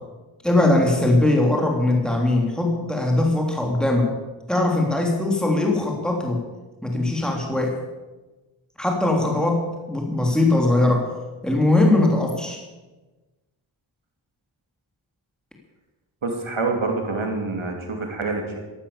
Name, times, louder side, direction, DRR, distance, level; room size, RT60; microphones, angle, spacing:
voice 1, 0.4-4.1 4.5-6.4 6.8-7.8 8.8-11.1 11.4-12.6, left 2 dB, ahead, 0 dB, 3.2 m, -20 dB
voice 2, 16.2-18.6, right 3 dB, 85° right, 2 dB, 2.8 m, -26 dB
14.0 x 11.5 x 7.1 m, 1.2 s
cardioid pair, 45°, 46 cm